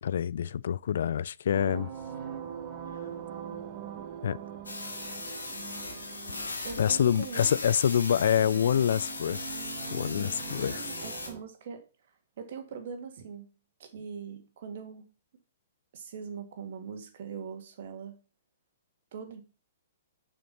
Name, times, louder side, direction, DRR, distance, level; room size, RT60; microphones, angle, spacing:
voice 1, 0.0-1.9 4.2-4.4 6.8-9.5 9.9-10.8, left 9 dB, 60° left, 0.3 m, -26 dB
sound 1, 1.5-11.4, right 8 dB, 40° right, 1.7 m, -43 dB
sound 2, 4.7-11.3, left 2 dB, 80° left, 2.0 m, -38 dB
voice 2, 6.6-7.6 10.5-13.5 13.8-15.1 15.9-18.2 19.1-19.4, right 6 dB, 55° right, 2.1 m, -42 dB
7.1 x 5.7 x 5.6 m
figure-of-eight pair, 115°, 0 cm